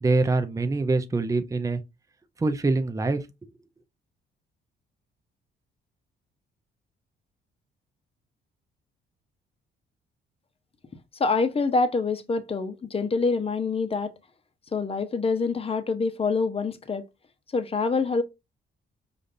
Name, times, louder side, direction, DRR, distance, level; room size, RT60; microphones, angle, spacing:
voice 1, 0.0-1.8 2.4-3.2, right 3 dB, 15° right, 0.6 m, -24 dB
voice 2, 11.2-14.1 14.7-17.0 17.5-18.2, left 4 dB, 30° left, 0.8 m, -26 dB
5.0 x 2.5 x 2.5 m
cardioid pair, 90°, 20 cm